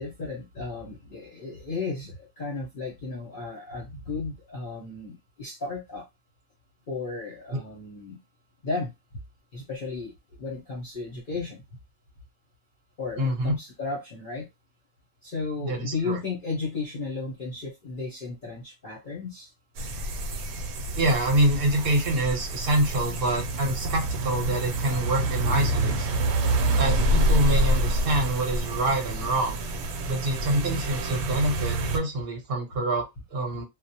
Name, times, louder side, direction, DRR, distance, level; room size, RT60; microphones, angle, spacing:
voice 1, 0.0-6.1 6.9-8.2 8.6-8.9 9.5-10.1 10.4-11.6 13.0-14.5 15.2-19.5 25.5-25.9, left 3 dB, 45° left, -2 dB, 0.7 m, -34 dB
voice 2, 13.2-13.6 15.6-16.2 20.9-26.2 26.8-29.6 30.1-33.6, right 1 dB, 45° right, 1 dB, 0.9 m, -26 dB
sound 1, 19.8-32.0, right 1 dB, 85° right, 1.1 m, -27 dB
2.4 x 2.0 x 2.8 m, 0.20 s
omnidirectional pair, 1.5 m